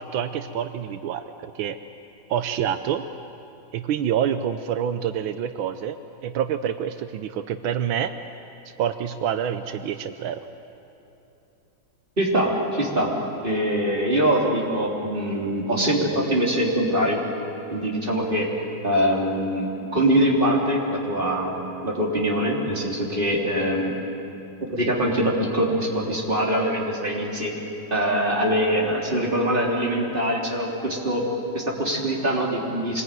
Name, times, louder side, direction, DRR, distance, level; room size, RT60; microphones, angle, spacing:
voice 1, 0.0-1.8 2.3-3.0 3.7-6.0 6.2-8.1 8.8-10.4, right 9 dB, 85° right, 9 dB, 1.5 m, -27 dB
voice 2, 12.2-13.1 13.4-17.2 17.7-18.5 18.8-23.9 24.6-27.5 27.9-31.3 31.5-33.0, equal, 25° right, -3 dB, 3.8 m, -23 dB
25.5 x 21.0 x 9.3 m, 2.9 s
omnidirectional pair, 2.2 m